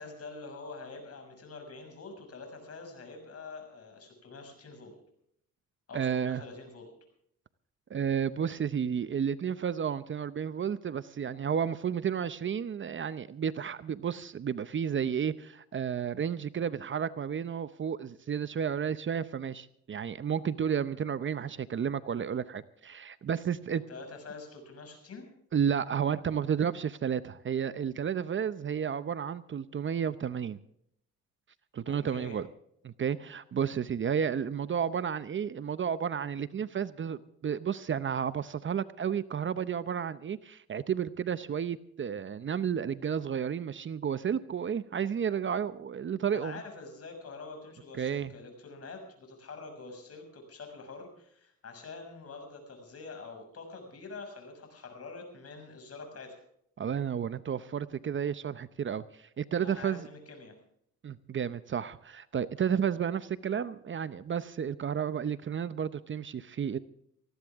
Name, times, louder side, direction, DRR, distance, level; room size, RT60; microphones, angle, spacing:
voice 1, 0.0-4.9 5.9-6.9 23.6-25.3 31.8-32.4 46.3-56.4 59.6-60.5, left 3 dB, 50° left, 5 dB, 6.4 m, -46 dB
voice 2, 5.9-6.4 7.9-23.8 25.5-30.6 31.7-32.5 32.8-46.6 48.0-48.3 56.8-60.1 61.0-66.8, right 8 dB, 40° right, 14 dB, 0.8 m, -32 dB
19.5 x 15.0 x 3.6 m, 0.71 s
cardioid pair, 90°, 30 cm